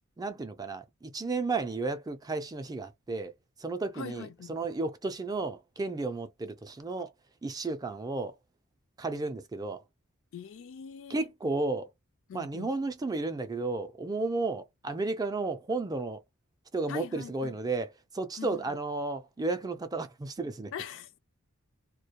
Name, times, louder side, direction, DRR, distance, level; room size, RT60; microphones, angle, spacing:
voice 1, 0.2-3.3 3.6-7.1 7.4-8.4 9.0-9.8 11.1-11.9 12.3-16.2 16.7-20.7, right 3 dB, 15° right, 0.4 m, -33 dB
voice 2, 3.9-4.6 10.3-11.3 12.3-12.7 16.9-17.5 18.4-18.8 20.7-21.1, left 7 dB, 60° left, 0.3 m, -42 dB
2.1 x 2.1 x 2.8 m
head